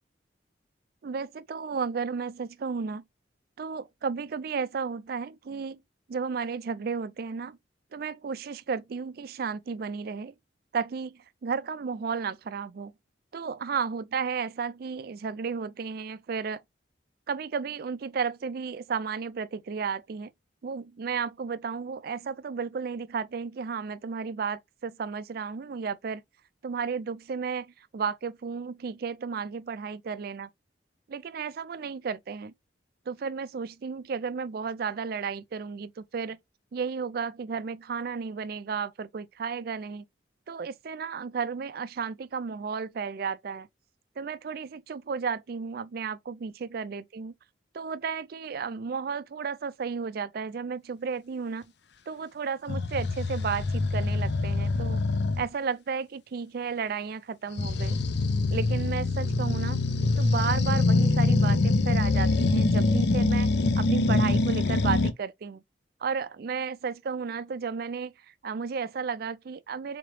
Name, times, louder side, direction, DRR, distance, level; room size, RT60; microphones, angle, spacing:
voice 1, 1.0-3.0 3.6-5.8 6.1-7.6 7.9-10.3 10.7-12.9 13.3-16.6 17.3-20.3 20.6-26.2 26.6-30.5 31.1-32.5 33.1-36.4 36.7-40.0 40.5-43.7 44.2-47.3 47.8-51.6 52.1-55.0 55.4-58.0 58.5-59.8 60.2-65.6 66.0-70.0, right 5 dB, 55° right, 0.4 m, -33 dB
sound 1, 52.7-55.5 57.6-65.1, left 3 dB, 65° left, 0.5 m, -24 dB
3.8 x 3.0 x 3.1 m
head